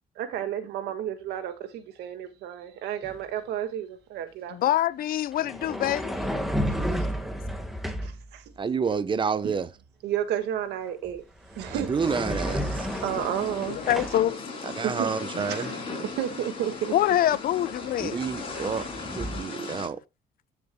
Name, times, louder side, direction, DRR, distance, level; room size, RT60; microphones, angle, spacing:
voice 1, 0.2-4.8 8.0-8.4 9.4-9.6 10.0-11.2 11.5-11.9 12.7-13.8 14.8-16.9, right 10 dB, 80° right, 1.7 m, -32 dB
sound 1, 3.0-3.2 5.3-8.2 10.9-11.1 11.4-14.3 16.7-16.8 17.1-19.4, equal, ahead, 1.5 m, -32 dB
voice 2, 4.5-6.1 13.7-14.4 16.9-18.2, left 12 dB, 60° left, 0.6 m, -25 dB
voice 3, 8.6-9.7 11.7-12.9 14.8-15.7 18.0-18.8 19.2-20.0, right 5 dB, 30° right, 0.9 m, -29 dB
sound 2, 12.0-19.9, left 3 dB, 35° left, 5.6 m, -37 dB
13.5 x 7.0 x 2.2 m
cardioid pair, 110°, 17 cm